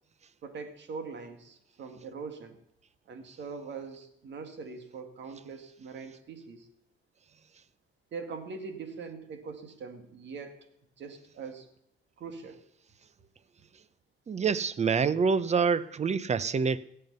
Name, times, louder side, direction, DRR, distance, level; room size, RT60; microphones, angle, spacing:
voice 1, 0.4-2.6 3.1-6.7 8.1-10.6 11.0-11.7 12.2-12.6, right 5 dB, 65° right, 2.1 m, -42 dB
voice 2, 14.3-16.8, right 5 dB, 35° right, 0.7 m, -26 dB
16.5 x 7.7 x 5.5 m
cardioid pair, 90°, 20 cm